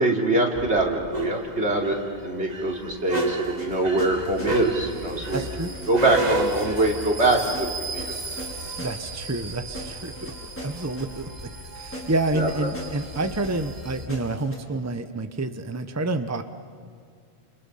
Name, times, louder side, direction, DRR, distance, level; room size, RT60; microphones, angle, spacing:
voice 1, 0.0-2.0 2.2-7.7 7.9-8.1 12.3-12.5, right 2 dB, 75° right, 0 dB, 3.5 m, -23 dB
sound 1, 0.5-14.1, right 2 dB, 40° right, 1.7 m, -33 dB
sound 2, 3.2-14.6, equal, 10° left, 5.3 m, -40 dB
voice 2, 5.3-5.7 8.8-10.3 10.6-11.3 11.7-16.4, right 2 dB, 15° right, 9 dB, 0.9 m, -28 dB
29.5 x 28.5 x 5.7 m, 2.2 s
omnidirectional pair, 1.1 m